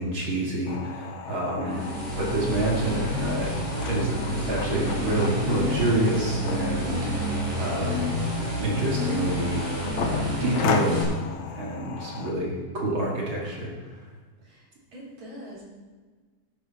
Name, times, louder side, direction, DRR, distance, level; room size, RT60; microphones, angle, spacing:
voice 1, 0.0-1.8 2.1-3.6 3.9-7.1 7.6-8.0 8.6-9.6 10.0-11.1 11.5-13.7, right 1 dB, 45° right, -3 dB, 2.7 m, -27 dB
sound 1, 0.7-12.3, left 6 dB, 75° left, 2.2 m, -35 dB
voice 2, 1.2-2.2 14.4-15.6, right 1 dB, 65° right, -6 dB, 5.4 m, -43 dB
sound 2, 1.7-11.0, equal, 25° right, 5.2 m, -29 dB
13.5 x 11.5 x 4.2 m, 1.4 s
omnidirectional pair, 3.4 m